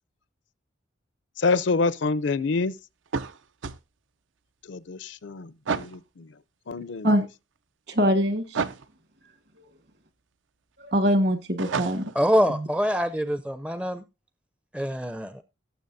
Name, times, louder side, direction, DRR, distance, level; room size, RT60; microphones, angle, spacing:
voice 1, 1.4-2.7 4.6-6.4 6.7-7.1, left 4 dB, 70° left, 0.6 m, -27 dB
sound 1, 3.1-3.8 5.7-6.0 8.5-8.9 11.6-12.2, right 5 dB, 80° right, 0.6 m, -30 dB
voice 2, 7.9-8.6 10.8-12.0 12.5-12.7, equal, 55° right, 1.6 m, -23 dB
voice 3, 12.2-14.0 14.7-15.4, equal, 5° right, 0.4 m, -25 dB
17.5 x 7.2 x 2.6 m
head